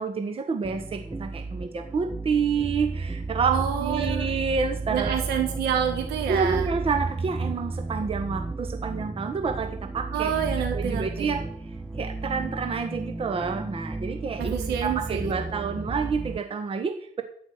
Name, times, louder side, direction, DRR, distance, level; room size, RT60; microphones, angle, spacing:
voice 1, 0.0-5.2 6.3-10.3 10.7-11.5 12.0-14.5 14.8-17.2, right 5 dB, 35° right, 7 dB, 1.3 m, -28 dB
sound 1, 0.6-16.4, right 3 dB, 5° right, 0.5 m, -33 dB
voice 2, 3.5-4.3 4.9-6.7 10.1-11.4 14.4-15.8, right 8 dB, 80° right, 2 dB, 4.1 m, -28 dB
12.0 x 9.6 x 6.6 m, 0.65 s
cardioid pair, 110°, 17 cm